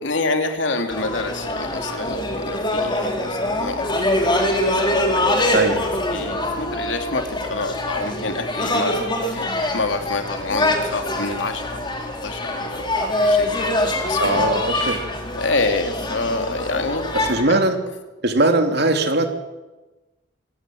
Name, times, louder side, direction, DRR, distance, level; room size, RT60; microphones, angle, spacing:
voice 1, 0.0-5.8 6.1-15.0 15.4-17.0 17.5-17.6, left 3 dB, 85° left, 5 dB, 2.9 m, -28 dB
sound 1, 0.9-17.4, left 1 dB, 25° left, 4.1 m, -24 dB
voice 2, 5.5-5.9 14.2-15.0 17.3-17.8 18.2-19.3, right 2 dB, 60° right, 5 dB, 3.1 m, -19 dB
25.5 x 18.0 x 7.9 m, 1.1 s
head